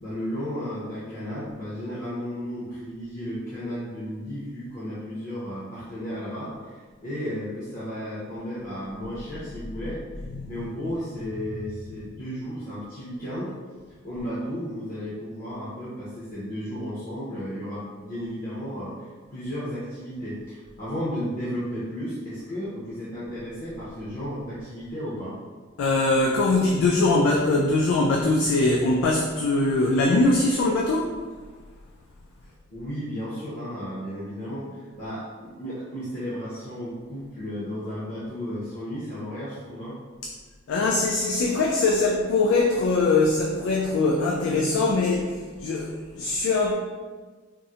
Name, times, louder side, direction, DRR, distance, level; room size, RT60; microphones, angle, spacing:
voice 1, 0.0-10.0 10.5-13.5 14.0-18.9 19.3-25.4 32.7-40.0, equal, 45° left, -10 dB, 0.6 m, -34 dB
voice 2, 10.2-10.9 25.8-31.2 40.7-46.7, left 2 dB, 85° left, -1 dB, 0.3 m, -22 dB
3.6 x 2.0 x 2.7 m, 1.4 s
head